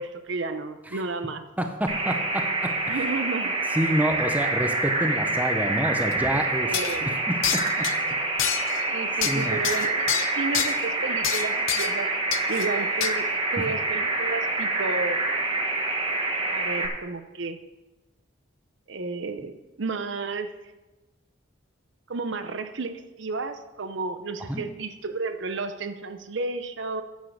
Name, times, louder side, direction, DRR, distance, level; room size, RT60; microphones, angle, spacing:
voice 1, 0.0-1.5 2.9-3.5 6.7-7.2 8.9-12.1 12.5-15.3 16.5-17.6 18.9-20.5 22.1-27.0, right 3 dB, 60° right, 9 dB, 0.6 m, -32 dB
voice 2, 1.6-3.0 3.7-6.7 7.0-7.9 9.2-9.6 24.5-24.6, equal, 10° right, 5 dB, 0.7 m, -28 dB
sound 1, 1.9-16.9, right 2 dB, 25° right, 1.2 m, -27 dB
sound 2, 6.1-6.2 6.7-7.0 7.4-8.0 8.4-8.8 9.2-10.7 11.2-12.0 12.3-12.7 13.0-13.1, left 11 dB, 70° left, 0.6 m, -28 dB
9.1 x 7.4 x 6.3 m, 1.1 s
head